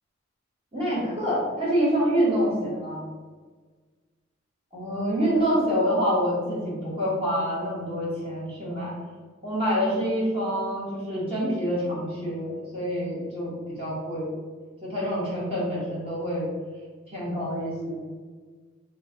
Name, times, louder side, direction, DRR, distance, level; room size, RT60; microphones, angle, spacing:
voice 1, 0.7-3.1 4.7-8.9 9.4-14.3 14.8-16.5 17.1-18.0, equal, 25° right, -8 dB, 1.1 m, -26 dB
3.0 x 2.2 x 3.7 m, 1.5 s
head